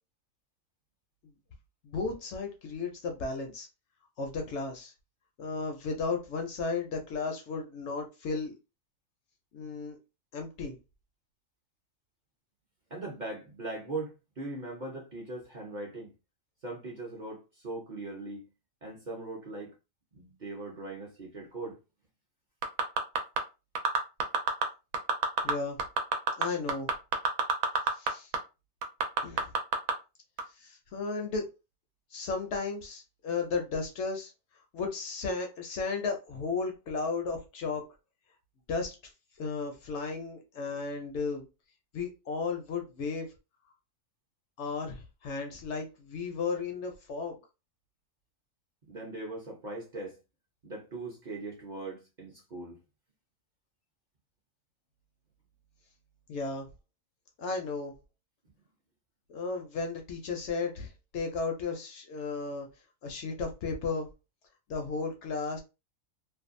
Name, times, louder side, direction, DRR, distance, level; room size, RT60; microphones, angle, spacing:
voice 1, 1.8-3.7 4.2-4.9 5.4-8.5 9.5-10.0 10.3-10.8 25.4-25.8 26.4-26.9 27.9-28.3 29.2-29.5 30.6-31.4 32.1-34.3 34.7-37.8 38.7-38.9 39.4-41.5 41.9-43.3 44.6-47.4 56.3-56.7 57.4-57.9 59.3-62.7 63.0-64.1 64.7-65.6, left 4 dB, 65° left, 0.8 m, -34 dB
voice 2, 12.9-16.1 16.6-18.5 18.8-19.7 20.1-21.8 48.9-50.2 50.6-52.8, right 2 dB, 45° right, 0.7 m, -40 dB
sound 1, 22.6-23.4 23.8-24.6 24.9-25.5 25.8-28.1 28.3-28.4 28.8-29.9 30.4-30.5, right 4 dB, 90° right, 1.0 m, -26 dB
2.5 x 2.3 x 2.5 m
omnidirectional pair, 1.4 m